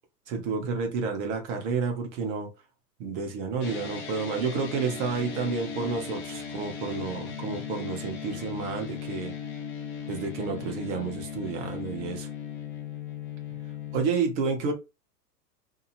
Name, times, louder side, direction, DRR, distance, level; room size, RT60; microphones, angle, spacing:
voice 1, 0.3-2.5 3.0-9.3 10.1-12.3 13.9-14.7, right 5 dB, 40° right, 1.0 m, -30 dB
sound 1, 3.6-14.1, left 7 dB, 30° left, 0.5 m, -37 dB
2.8 x 2.7 x 2.5 m
figure-of-eight pair, 95°, 50 cm